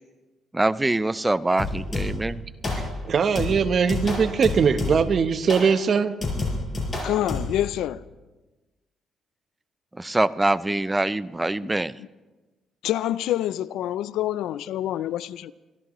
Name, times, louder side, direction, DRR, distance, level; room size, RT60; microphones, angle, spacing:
voice 1, 0.5-2.4 9.9-12.0, right 2 dB, 15° right, 0.4 m, -24 dB
sound 1, 1.6-2.3 2.6-3.1 3.3-5.2 5.5-5.7 6.2-7.6, left 2 dB, 30° left, 5.6 m, -29 dB
voice 2, 3.1-6.1, right 6 dB, 50° right, 0.9 m, -21 dB
voice 3, 7.0-8.0 12.0-12.1 12.8-15.5, left 12 dB, 85° left, 0.4 m, -27 dB
25.0 x 14.0 x 3.0 m
cardioid pair, 90°, 0 cm